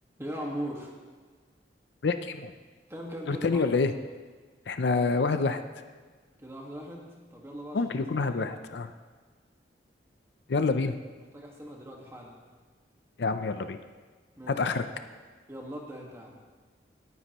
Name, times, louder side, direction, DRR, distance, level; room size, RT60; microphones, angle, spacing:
voice 1, 0.2-0.9 2.9-3.6 6.4-7.8 8.2-8.6 11.3-12.4 14.3-14.6 15.5-16.3, equal, 15° right, -1 dB, 1.6 m, -39 dB
voice 2, 2.0-2.5 3.3-3.9 4.7-5.6 7.7-8.9 10.5-11.0 13.2-13.8 14.5-14.8, left 4 dB, 65° left, 9 dB, 0.5 m, -27 dB
18.5 x 9.6 x 3.0 m, 1.5 s
head